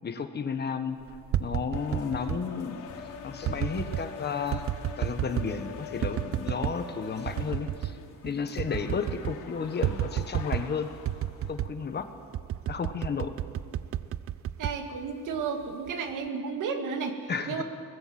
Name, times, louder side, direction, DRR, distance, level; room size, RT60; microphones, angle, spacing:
voice 1, 0.0-1.0 1.4-2.8 3.2-4.6 5.0-8.0 8.2-10.9 11.5-12.1 12.7-13.3 17.3-17.6, left 5 dB, 35° left, 8 dB, 1.3 m, -32 dB
sound 1, 1.1-2.4 3.4-4.1 4.5-5.6 6.0-6.8 7.3-8.0 8.3-8.4 8.6-9.4 9.8-10.7 11.1-11.8 12.3-15.4 15.9-16.3, right 12 dB, 45° right, 0.6 m, -31 dB
sound 2, 1.7-11.6, left 5 dB, 80° left, 2.9 m, -44 dB
voice 2, 14.6-17.6, right 5 dB, 75° right, 5 dB, 2.5 m, -33 dB
22.0 x 19.0 x 7.7 m, 2.4 s
cardioid pair, 165°, 31 cm